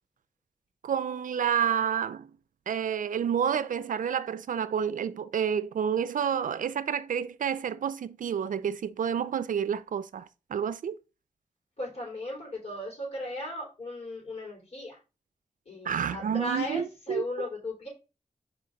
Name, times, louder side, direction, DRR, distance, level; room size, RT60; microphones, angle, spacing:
voice 1, 0.8-2.3 2.7-11.0 15.9-17.2, right 8 dB, 85° right, 0.4 m, -29 dB
voice 2, 11.8-15.0 15.7-17.9, left 1 dB, 50° left, 3.8 m, -36 dB
4.9 x 3.7 x 5.1 m
wide cardioid pair, 100°, 13 cm